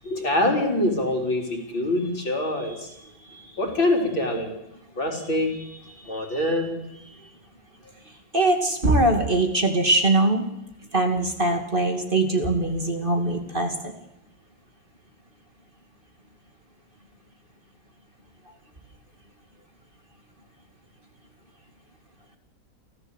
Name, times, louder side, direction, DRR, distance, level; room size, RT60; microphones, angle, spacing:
voice 1, 0.0-2.9 3.3-4.6 5.0-5.8 6.0-6.7, left 1 dB, 85° left, 1 dB, 5.0 m, -25 dB
voice 2, 8.3-10.4 10.9-13.9, right 2 dB, 25° right, 4 dB, 2.5 m, -22 dB
29.0 x 13.5 x 8.2 m, 0.86 s
omnidirectional pair, 2.1 m